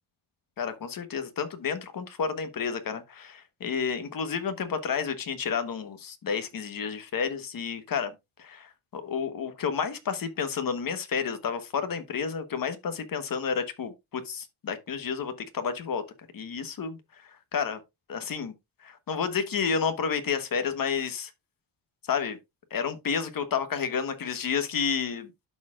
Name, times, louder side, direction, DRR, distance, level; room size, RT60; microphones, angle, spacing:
voice 1, 0.6-8.1 8.4-16.0 16.3-17.0 17.5-17.8 18.1-18.5 18.8-21.3 22.1-22.4 22.7-25.3, left 6 dB, 45° left, 1.2 m, -30 dB
12.0 x 4.4 x 2.4 m
cardioid pair, 125°, 48 cm